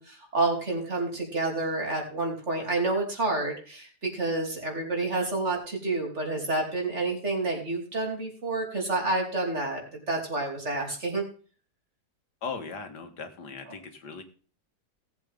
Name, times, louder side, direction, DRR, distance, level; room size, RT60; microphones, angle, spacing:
voice 1, 0.0-11.2, right 2 dB, 45° right, 1 dB, 3.4 m, -29 dB
voice 2, 12.4-14.2, left 5 dB, 85° left, 7 dB, 2.1 m, -38 dB
18.0 x 8.1 x 3.6 m, 0.38 s
omnidirectional pair, 1.7 m